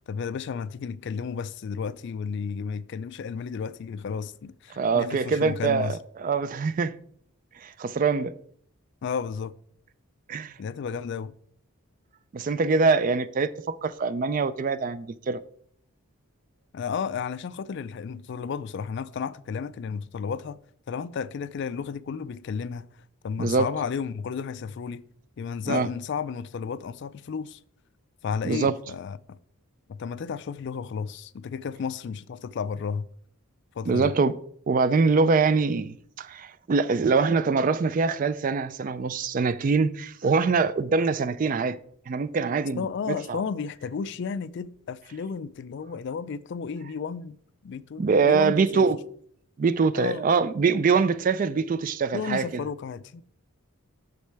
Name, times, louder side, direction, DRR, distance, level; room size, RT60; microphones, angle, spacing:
voice 1, 0.1-6.0 9.0-9.5 10.6-11.3 16.7-20.6 20.9-22.9 23.2-25.0 25.4-27.6 28.2-29.4 29.9-33.1 33.8-34.1 42.8-47.4 47.6-48.8 49.9-50.3 52.1-53.2, left 6 dB, 50° left, 0.3 m, -33 dB
voice 2, 4.8-6.9 7.6-8.3 10.3-10.5 12.3-15.4 23.4-23.7 25.7-25.9 28.4-28.7 33.9-34.3 34.7-41.8 42.1-42.8 43.1-43.4 48.0-49.0 49.6-52.5, right 4 dB, 35° right, 0.3 m, -24 dB
8.2 x 6.5 x 3.4 m
head